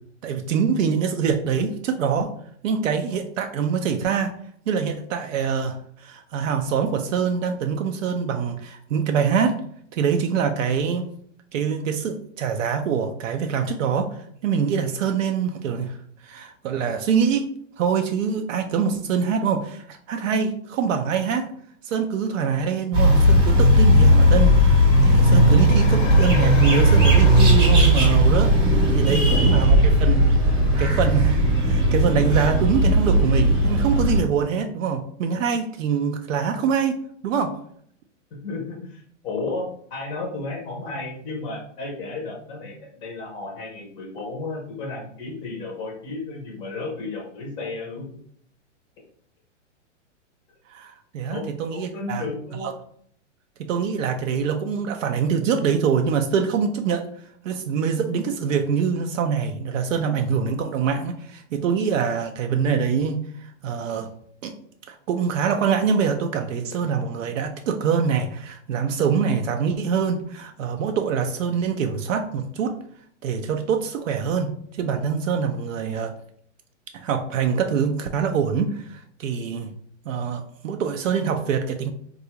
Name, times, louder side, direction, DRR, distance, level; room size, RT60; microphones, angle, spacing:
voice 1, 0.2-2.3 2.6-4.4 4.7-9.6 9.9-11.1 11.5-17.5 17.8-21.5 21.8-30.2 30.8-37.6 50.7-52.3 52.6-52.7 53.6-57.1 57.4-64.1 64.4-64.5 64.9-72.7 73.2-76.1 76.9-79.7 80.1-81.9, right 6 dB, 90° right, 5 dB, 0.5 m, -24 dB
sound 1, 22.9-34.2, equal, 25° right, 0.8 m, -16 dB
sound 2, 25.1-29.2, left 5 dB, 85° left, 0.6 m, -32 dB
voice 2, 29.0-29.7 38.4-39.6 39.9-48.2 51.3-52.7, left 3 dB, 15° left, -2 dB, 0.5 m, -33 dB
3.7 x 2.3 x 2.8 m, 0.63 s
hypercardioid pair, 160°, 37 cm